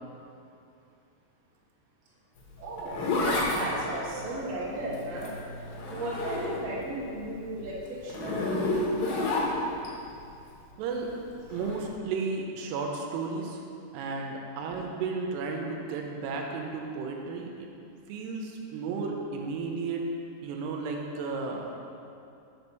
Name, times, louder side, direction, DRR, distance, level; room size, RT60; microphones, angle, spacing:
Zipper (clothing), 2.4-6.9 7.2-9.9 11.5-11.8, left 2 dB, 70° left, 2.5 m, -30 dB
voice 1, 2.6-3.1 3.4-5.3 5.9-8.9, right 1 dB, 55° right, -6 dB, 1.9 m, -35 dB
voice 2, 10.8-11.1 11.5-13.6 13.9-17.7 18.1-20.0 20.4-21.7, right 4 dB, 90° right, 1 dB, 2.8 m, -33 dB
5.4 x 5.3 x 6.2 m, 2.6 s
omnidirectional pair, 4.7 m